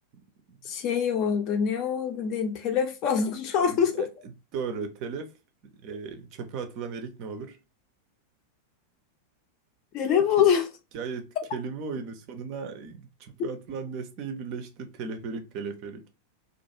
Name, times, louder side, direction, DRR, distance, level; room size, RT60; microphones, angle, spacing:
voice 1, 0.1-0.6 3.6-4.1 4.5-5.3 5.7-7.6 10.4-10.5 10.9-16.0, right 5 dB, 40° right, 0.5 m, -36 dB
voice 2, 0.6-4.0 9.9-10.7, left 7 dB, 40° left, 0.6 m, -25 dB
2.4 x 2.3 x 2.6 m
figure-of-eight pair, 90°, 0 cm